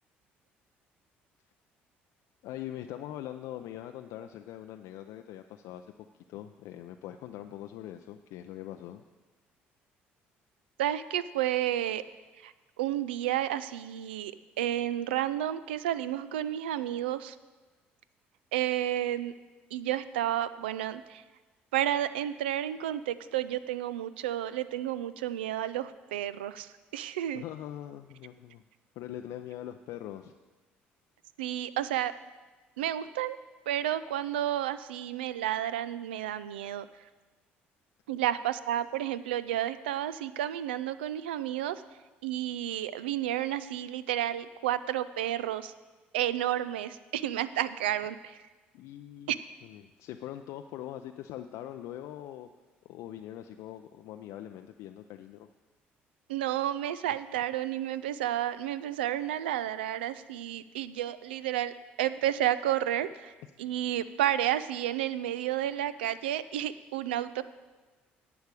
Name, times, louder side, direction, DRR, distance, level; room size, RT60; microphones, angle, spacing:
voice 1, 2.4-5.9 6.3-9.0 27.3-28.6 29.0-30.3 48.7-49.4 49.6-52.5 52.8-55.5, left 12 dB, 70° left, 6 dB, 0.4 m, -42 dB
voice 2, 10.8-12.0 12.4-12.5 12.8-17.4 18.5-19.3 19.7-21.2 21.7-27.4 31.4-32.1 32.8-33.4 33.7-36.9 38.1-41.8 42.2-45.7 46.1-48.4 49.3-49.4 56.3-67.4, right 12 dB, 90° right, 15 dB, 0.3 m, -31 dB
10.5 x 8.1 x 4.8 m, 1.3 s
hypercardioid pair, 55°, 5 cm